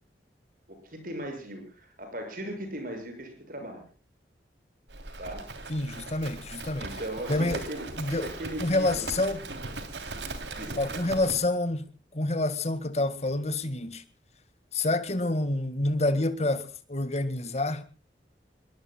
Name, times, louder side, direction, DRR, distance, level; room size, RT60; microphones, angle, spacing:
voice 1, 0.7-3.8 5.2-5.5 6.8-7.9 8.2-9.2 10.5-10.8, right 1 dB, 50° right, 7.1 m, -38 dB
Livestock farm animals working animals, 4.9-11.4, right 3 dB, 85° right, 3.3 m, -39 dB
voice 2, 5.7-6.9 7.3-7.7 7.9-8.3 8.6-9.4 10.8-11.9 12.1-14.0 14.7-17.8, left 2 dB, 40° left, 1.8 m, -28 dB
26.5 x 22.0 x 2.3 m
head